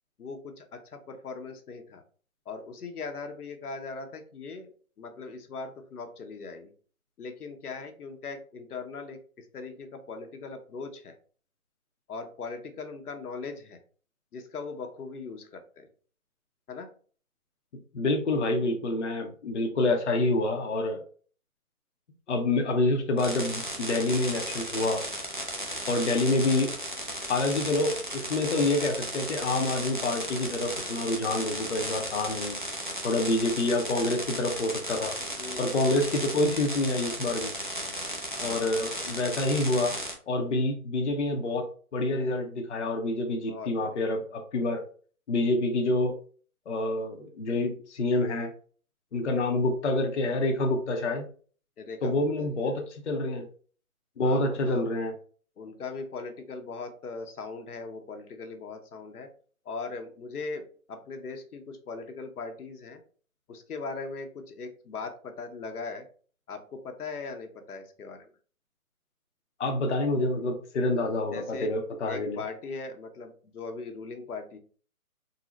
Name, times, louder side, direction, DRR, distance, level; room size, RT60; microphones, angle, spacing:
voice 1, 0.2-2.0 2.5-4.7 5.0-6.7 7.2-11.1 12.1-13.8 14.3-15.9 16.7-16.9 35.4-35.8 38.4-38.7 43.4-43.9 51.8-52.8 54.2-54.8 55.6-59.3 59.6-63.0 63.5-66.1 66.5-68.3 71.3-71.7 72.1-74.6, left 4 dB, 85° left, 5 dB, 0.8 m, -39 dB
voice 2, 17.9-21.0 22.3-25.0 25.9-26.7 27.3-32.6 33.0-35.1 35.6-37.5 38.4-39.9 40.3-44.8 45.3-46.2 46.7-48.5 49.1-51.3 52.0-53.5 54.2-55.1 69.6-72.4, left 2 dB, 55° left, 3 dB, 0.6 m, -27 dB
sound 1, 23.2-40.1, equal, 40° right, 0.4 m, -35 dB
3.7 x 2.0 x 2.9 m, 0.43 s
hypercardioid pair, 175°, 44 cm